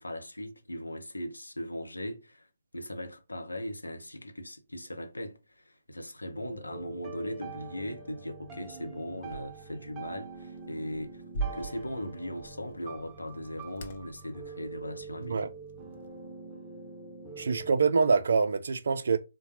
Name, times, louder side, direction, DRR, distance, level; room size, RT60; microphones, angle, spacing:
voice 1, 0.0-2.5 2.7-11.2 11.5-15.5, equal, 90° left, 0.7 m, -39 dB
sound 1, 6.3-17.7, right 4 dB, 15° right, 0.7 m, -45 dB
sound 2, 9.2-16.3, right 3 dB, 45° left, 0.6 m, -43 dB
voice 2, 17.4-19.2, right 5 dB, 60° right, 0.4 m, -25 dB
3.7 x 2.2 x 2.8 m
figure-of-eight pair, 135°, 0 cm